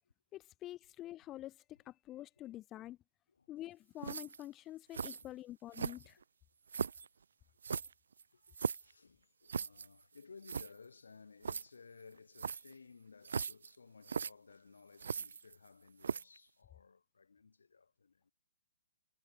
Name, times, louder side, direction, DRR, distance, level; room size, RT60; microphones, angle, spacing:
voice 1, 0.3-3.0 3.5-6.2, left 14 dB, 20° left, 0.5 m, -47 dB
sound 1, 4.0-4.5 4.9-5.2 5.7-6.2 6.7-7.1 7.6-8.9 9.5-9.9 10.2-10.3 10.4-10.7 11.4-11.6 12.4-12.7 13.2-13.7 14.0-14.3 15.0-15.7 16.0-16.4, right 6 dB, 65° right, 0.4 m, -38 dB
voice 2, 8.3-18.3, left 5 dB, 70° left, 2.9 m, -59 dB
figure-of-eight pair, 125°, 0 cm